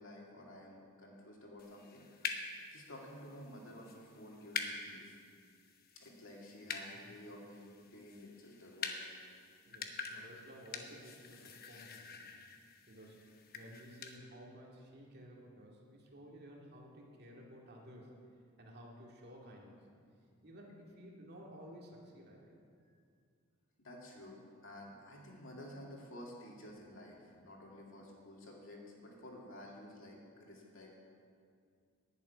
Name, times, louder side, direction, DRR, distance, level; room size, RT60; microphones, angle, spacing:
voice 1, 0.0-2.1 2.7-5.2 5.9-9.1 23.8-31.0, left 1 dB, 60° left, -2 dB, 2.6 m, -52 dB
sound 1, 1.6-14.2, left 5 dB, 45° left, 1.0 m, -46 dB
voice 2, 9.7-12.4 12.9-18.2 18.6-19.8 20.4-22.5 22.9-23.0, equal, 50° right, -2 dB, 2.2 m, -54 dB
11.0 x 8.2 x 9.5 m, 2.3 s
head